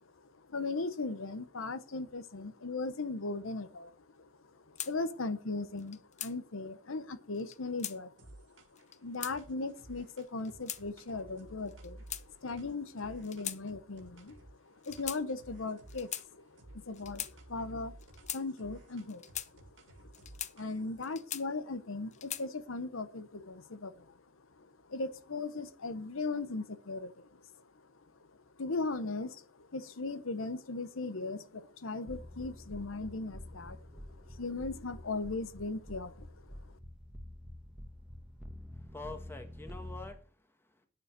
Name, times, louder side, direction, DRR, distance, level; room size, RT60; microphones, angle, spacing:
voice 1, 0.0-27.9 28.6-36.6, left 3 dB, 85° left, 0.9 m, -39 dB
sound 1, 4.8-4.9 5.8-6.3 7.4-8.0 8.7-9.4 10.2-10.8 11.7-12.6 13.2-13.6 13.9-14.1 14.8-15.2 15.9-16.3 16.9-17.3 18.0-18.4 19.1-19.5 20.1-20.5 21.0-21.7 22.1-22.5, left 11 dB, 35° left, 0.7 m, -40 dB
sound 2, 8.2-8.9 9.3-14.5 14.9-16.3 16.6-21.0, right 1 dB, 65° right, 2.1 m, -54 dB
sound 3, 32.1-40.1, left 1 dB, 5° right, 1.3 m, -48 dB
voice 2, 38.7-40.9, left 3 dB, 10° left, 1.6 m, -47 dB
9.5 x 6.9 x 6.6 m
head